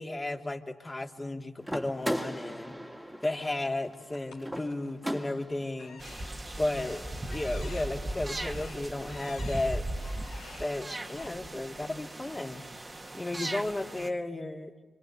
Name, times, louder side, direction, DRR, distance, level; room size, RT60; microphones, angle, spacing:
voice 1, 0.0-2.8 3.2-6.0 6.6-9.9 10.6-12.6 13.1-14.7, left 2 dB, 25° left, 3 dB, 2.8 m, -34 dB
sound 1, 1.6-5.7, equal, ahead, 2.4 m, -37 dB
sound 2, 4.1-5.2 5.7-11.3, left 4 dB, 80° left, 3.8 m, -51 dB
sound 3, 6.0-14.1, right 1 dB, 25° right, 1.9 m, -38 dB
26.5 x 25.5 x 8.2 m, 1.3 s
hypercardioid pair, 40°, 0 cm